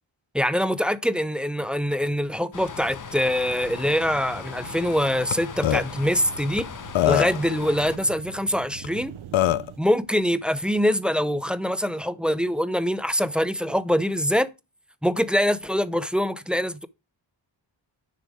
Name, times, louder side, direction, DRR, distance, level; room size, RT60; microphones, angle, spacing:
voice 1, 0.3-6.7 7.0-9.1 9.8-14.5 15.0-16.9, equal, ahead, 0.6 m, -24 dB
sound 1, 2.5-8.0, left 6 dB, 45° left, 0.7 m, -38 dB
sound 2, 3.4-9.8, right 10 dB, 90° right, 0.7 m, -44 dB
Burping eructation, 5.3-5.4 5.6-5.8 6.6-6.7 7.0-7.5 8.8-8.9 9.3-9.7, left 13 dB, 80° left, 0.5 m, -21 dB
9.9 x 3.4 x 4.8 m
cardioid pair, 45°, 46 cm